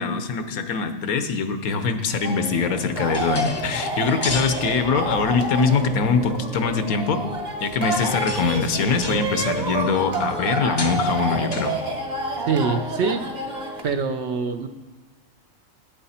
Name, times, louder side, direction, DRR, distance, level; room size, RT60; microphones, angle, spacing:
voice 1, 0.0-7.2 7.6-11.7, left 5 dB, 85° left, 8 dB, 1.3 m, -23 dB
sound 1, 2.2-13.8, right 1 dB, 35° right, 1.2 m, -29 dB
sound 2, 3.1-14.0, left 3 dB, 25° left, 0.6 m, -37 dB
voice 2, 12.5-13.2 13.8-14.7, right 5 dB, 60° right, 8 dB, 0.9 m, -24 dB
12.0 x 8.7 x 4.3 m, 1.2 s
omnidirectional pair, 1.5 m